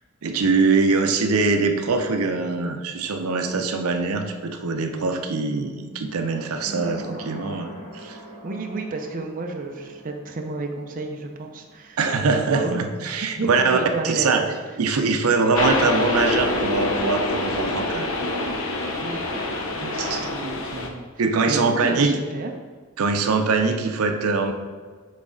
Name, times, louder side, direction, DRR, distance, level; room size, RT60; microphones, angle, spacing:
voice 1, 0.2-8.2 12.0-13.8 14.0-14.5 14.8-18.1 18.8-19.0 19.8-20.3 21.2-22.1 23.0-24.5, right 4 dB, 90° right, 6 dB, 0.5 m, -23 dB
sound 1, 6.6-15.1 15.4-15.5, right 1 dB, 30° left, 1.6 m, -43 dB
voice 2, 8.4-12.8 13.0-14.5 19.0-19.2 20.2-21.1 21.5-22.5, right 3 dB, 40° right, 2 dB, 0.5 m, -31 dB
sound 2, 15.5-20.9, left 2 dB, 65° left, 0.7 m, -26 dB
6.2 x 4.1 x 3.7 m, 1.5 s
head